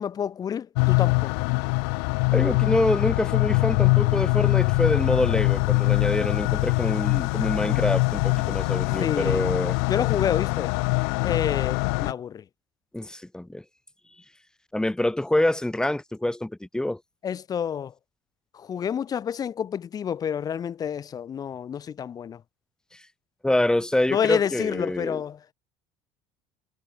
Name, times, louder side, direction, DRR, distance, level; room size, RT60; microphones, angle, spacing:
voice 1, 0.0-1.5 7.5-7.8 9.0-9.5 9.9-10.7 11.2-12.4 17.2-17.9 18.5-22.4 24.1-25.5, left 8 dB, 30° left, 0.4 m, -29 dB
sound 1, 0.8-12.1, left 40 dB or more, 85° left, 0.7 m, -23 dB
voice 2, 2.3-9.8 12.9-13.6 14.7-17.0 23.4-25.2, left 1 dB, 5° left, 1.6 m, -26 dB
supercardioid pair, 115°, 13 cm